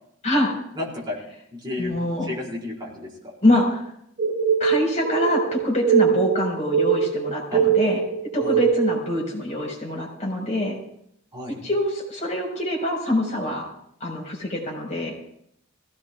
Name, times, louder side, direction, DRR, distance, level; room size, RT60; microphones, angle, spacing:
voice 1, 0.8-1.2 1.5-1.9 2.3-3.1 7.5-7.6 8.4-8.6 11.3-11.6, left 2 dB, 20° right, -4 dB, 4.8 m, -31 dB
voice 2, 1.8-2.3 3.4-3.8 4.6-8.0 8.3-10.8 11.6-13.7 14.0-15.1, left 1 dB, 35° left, -2 dB, 4.9 m, -24 dB
sound 1, 4.2-9.0, right 7 dB, 50° right, 3.0 m, -22 dB
22.0 x 17.0 x 2.4 m, 0.73 s
head